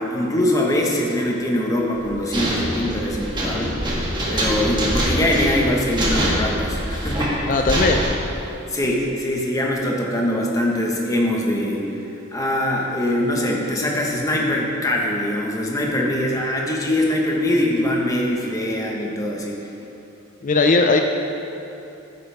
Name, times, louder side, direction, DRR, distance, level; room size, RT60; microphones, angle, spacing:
voice 1, 0.0-3.8 4.3-7.6 8.7-11.8 12.3-19.7, left 1 dB, 15° left, -2 dB, 1.3 m, -22 dB
sound 1, 1.9-8.1, equal, 20° right, 1.5 m, -24 dB
voice 2, 7.5-8.0 20.4-21.0, left 3 dB, 40° left, 4 dB, 0.5 m, -17 dB
13.5 x 9.5 x 3.5 m, 2.9 s
head